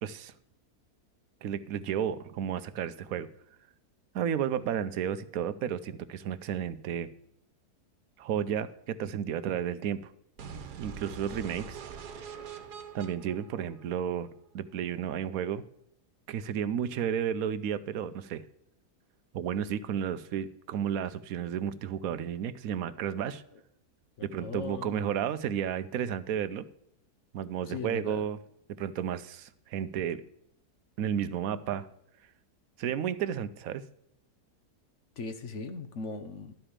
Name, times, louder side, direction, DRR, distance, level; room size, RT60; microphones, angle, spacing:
voice 1, 0.0-0.3 1.4-3.3 4.1-7.1 8.2-10.1 10.8-11.8 12.9-14.3 14.5-15.6 16.3-18.4 19.3-23.4 24.2-26.6 27.3-28.4 28.7-30.2 31.0-31.9 32.8-33.8, right 9 dB, 70° right, 14 dB, 1.0 m, -32 dB
sound 1, 10.4-14.4, right 7 dB, 90° right, 1.6 m, -44 dB
voice 2, 24.2-25.1 27.7-28.3 35.2-36.5, left 4 dB, 55° left, 9 dB, 1.0 m, -39 dB
12.0 x 4.9 x 7.2 m, 0.73 s
omnidirectional pair, 1.7 m